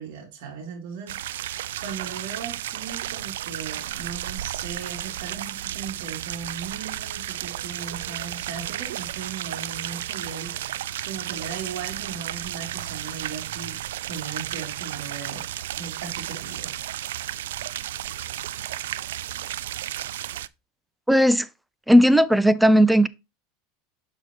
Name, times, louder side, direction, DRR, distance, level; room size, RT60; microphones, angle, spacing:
voice 1, 0.0-15.5 15.8-16.8, right 6 dB, 70° right, 2.9 m, -38 dB
sound 1, 1.1-20.5, right 13 dB, 85° right, 0.3 m, -33 dB
voice 2, 21.1-21.5 21.9-23.1, equal, 5° right, 0.4 m, -16 dB
6.6 x 6.2 x 3.0 m
supercardioid pair, 120°, 0 cm